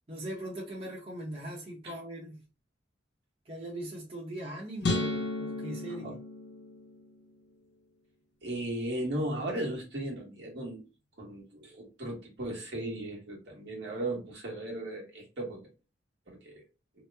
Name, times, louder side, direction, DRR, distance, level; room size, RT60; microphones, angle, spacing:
voice 1, 0.1-2.4 3.5-6.2, right 1 dB, 30° right, 0.8 m, -40 dB
sound 1, 4.8-7.2, left 2 dB, 65° left, 0.6 m, -33 dB
voice 2, 8.4-10.8 11.2-15.7 16.3-16.6, right 1 dB, 65° right, 1.3 m, -36 dB
2.9 x 2.1 x 3.3 m
head